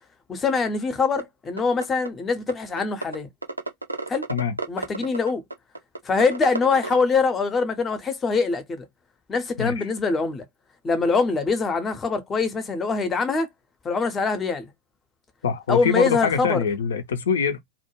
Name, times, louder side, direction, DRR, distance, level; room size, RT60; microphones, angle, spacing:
voice 1, 0.3-3.3 4.1-4.2 4.7-5.4 6.0-8.9 9.3-10.4 10.8-13.5 13.8-14.7 15.7-16.6, left 4 dB, 20° left, 0.6 m, -23 dB
sound 1, 1.2-1.3 1.6-2.1 2.5-2.6 2.8-3.1 3.4-7.0, right 2 dB, 85° right, 0.4 m, -30 dB
voice 2, 9.6-9.9 15.4-17.6, left 6 dB, 60° left, 0.4 m, -24 dB
2.2 x 2.1 x 3.0 m
figure-of-eight pair, 90°, 0 cm